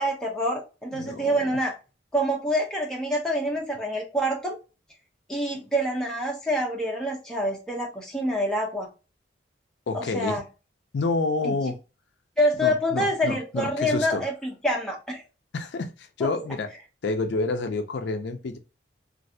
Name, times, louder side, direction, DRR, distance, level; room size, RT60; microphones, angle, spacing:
voice 1, 0.0-1.7 2.1-4.6 5.3-8.9 9.9-10.4 11.4-11.6 12.4-15.2 16.2-16.3, equal, 5° left, 0.8 m, -26 dB
voice 2, 0.9-1.6 9.9-10.4 10.9-11.8 12.6-14.2 15.5-16.7 17.0-18.6, left 3 dB, 70° left, 0.4 m, -29 dB
3.1 x 2.5 x 2.7 m
head